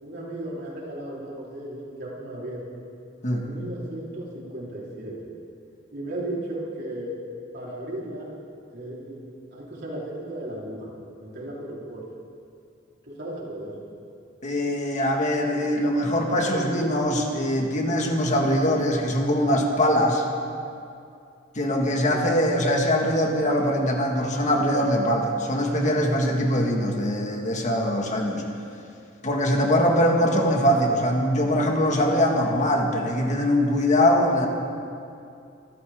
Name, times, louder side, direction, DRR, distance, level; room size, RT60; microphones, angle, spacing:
voice 1, 0.0-2.8 3.2-5.3 5.9-7.2 7.5-8.4 8.7-10.9 11.2-12.1 13.0-13.9 22.1-22.2, right 1 dB, 60° right, -5 dB, 4.1 m, -35 dB
voice 2, 14.4-20.3 21.6-28.4 29.2-34.5, equal, 40° left, 1 dB, 1.9 m, -22 dB
25.0 x 14.0 x 3.8 m, 2.5 s
head